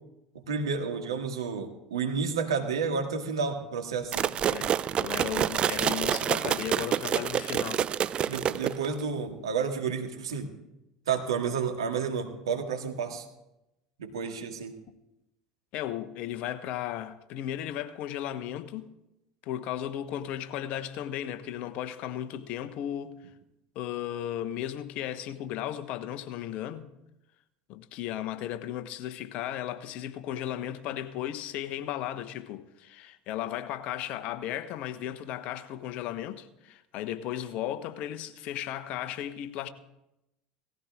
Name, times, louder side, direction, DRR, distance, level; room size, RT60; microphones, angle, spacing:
voice 1, 0.5-4.3 8.3-10.5 11.1-13.2 14.0-14.7, right 5 dB, 85° right, 2.0 m, -31 dB
sound 1, 4.1-9.0, right 9 dB, 40° right, 0.5 m, -28 dB
voice 2, 4.5-7.8 15.7-18.9 19.4-23.2 23.7-26.9 27.7-39.7, left 11 dB, 55° left, 1.1 m, -35 dB
18.0 x 14.5 x 3.7 m
hypercardioid pair, 75°, 3 cm